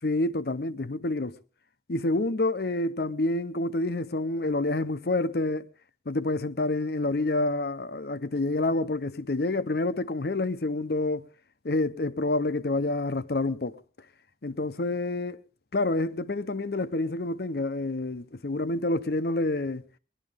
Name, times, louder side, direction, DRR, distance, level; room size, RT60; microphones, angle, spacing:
voice 1, 0.0-1.4 1.9-5.6 6.1-11.3 11.6-13.8 14.4-15.4 15.7-19.8, left 2 dB, 55° left, 0.7 m, -28 dB
20.5 x 12.0 x 3.6 m
head